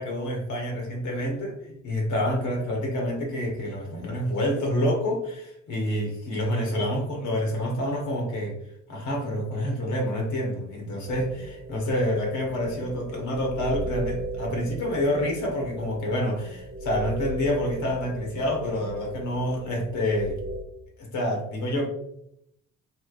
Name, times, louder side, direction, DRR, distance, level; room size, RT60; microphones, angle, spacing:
voice 1, 0.0-8.6 8.9-20.4 21.0-21.9, left 1 dB, 75° left, 0 dB, 1.1 m, -28 dB
sound 1, 11.1-20.6, right 1 dB, 35° right, 0.4 m, -36 dB
3.1 x 2.8 x 2.4 m, 0.75 s
cardioid pair, 90°, 30 cm